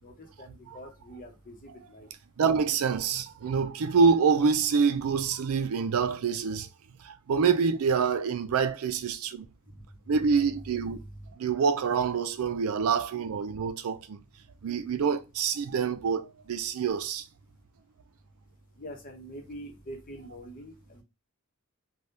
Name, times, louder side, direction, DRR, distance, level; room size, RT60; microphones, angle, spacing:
voice 1, 0.0-2.1 9.7-9.8 11.0-11.3 18.8-21.0, equal, 40° left, 0.8 m, -45 dB
voice 2, 2.4-6.7 7.0-9.5 10.1-11.0 11.4-14.2 14.6-17.2, right 5 dB, 75° right, 0.4 m, -26 dB
3.4 x 2.2 x 2.7 m
head